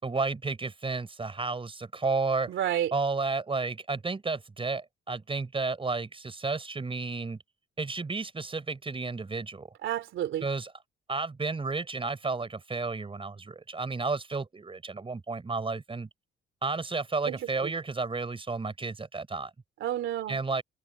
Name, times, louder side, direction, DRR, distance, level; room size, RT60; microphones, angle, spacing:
voice 1, 0.0-2.5 2.9-7.4 7.8-9.7 10.4-10.7 11.1-16.1 16.6-19.5 20.3-20.6, right 3 dB, 25° right, 5.1 m, -32 dB
voice 2, 2.5-2.9 9.8-10.5 17.2-17.7 19.8-20.4, right 12 dB, 75° right, 3.2 m, -31 dB
cardioid pair, 90°, 20 cm